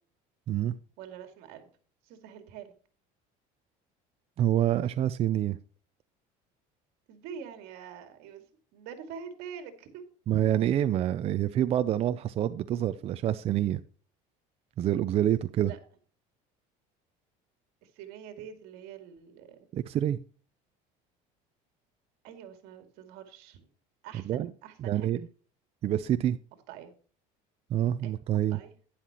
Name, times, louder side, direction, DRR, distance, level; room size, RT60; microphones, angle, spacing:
voice 1, 1.0-1.7 2.0-2.7 7.1-8.4 8.7-10.0 15.7-15.8 17.8-19.7 22.2-23.7 24.0-25.1 26.7-26.9 28.0-28.7, right 8 dB, 75° right, 7 dB, 2.3 m, -45 dB
voice 2, 4.4-5.6 10.3-13.8 14.8-15.7 19.7-20.2 24.3-24.5 24.8-25.2 25.8-26.4 27.7-28.6, right 11 dB, 40° right, 13 dB, 0.5 m, -27 dB
11.5 x 10.0 x 2.9 m, 0.42 s
cardioid pair, 140°, 16 cm